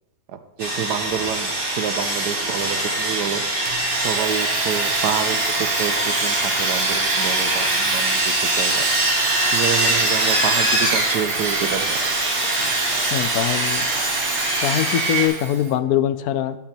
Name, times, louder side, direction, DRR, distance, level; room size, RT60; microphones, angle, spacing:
voice 1, 0.3-3.4 4.0-8.9 9.5-12.0, right 8 dB, 80° right, 9 dB, 1.4 m, -28 dB
Sawing, 0.6-15.3, right 1 dB, 35° right, 2.0 m, -22 dB
Domestic sounds home sounds, 3.7-15.8, right 6 dB, 50° right, 0.7 m, -30 dB
voice 2, 13.1-13.8 14.6-16.6, left 11 dB, 75° left, 13 dB, 1.0 m, -22 dB
12.5 x 6.0 x 4.4 m, 0.99 s
omnidirectional pair, 1.7 m